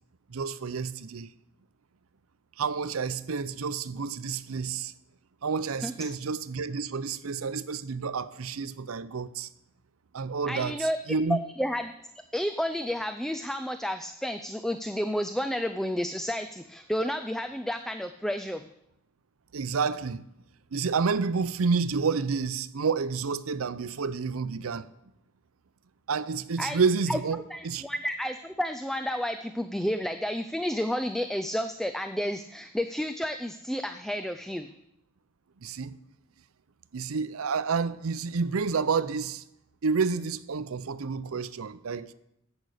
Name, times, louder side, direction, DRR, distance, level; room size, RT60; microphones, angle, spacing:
voice 1, 0.3-1.3 2.6-4.9 5.4-9.5 10.1-10.8 11.1-11.4 19.5-20.2 20.7-24.9 26.1-27.8 35.6-35.9 36.9-39.4 39.8-42.1, right 5 dB, 85° right, 0.6 m, -29 dB
voice 2, 5.8-6.2 10.5-11.0 11.3-11.9 12.3-18.7 26.6-26.8 27.1-27.2 27.5-34.7, equal, ahead, 0.4 m, -31 dB
11.0 x 8.0 x 6.5 m
head